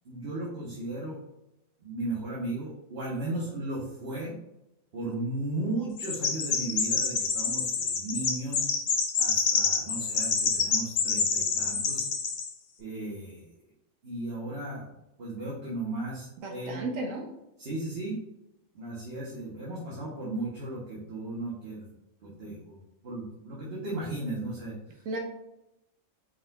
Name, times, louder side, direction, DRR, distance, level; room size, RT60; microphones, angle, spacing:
voice 1, 0.0-1.2 1.8-4.3 4.9-8.7 9.2-12.0 12.8-13.5 14.0-14.9 15.2-16.8 17.6-18.2 18.7-21.9 22.2-22.8 23.0-25.0, right 2 dB, 50° right, -7 dB, 1.1 m, -35 dB
Chirp tweet, 6.0-12.5, left 5 dB, 55° left, 0.6 m, -27 dB
voice 2, 16.4-17.2 25.0-25.2, right 2 dB, 75° right, 2 dB, 1.2 m, -33 dB
4.7 x 3.7 x 2.3 m, 0.88 s
omnidirectional pair, 1.4 m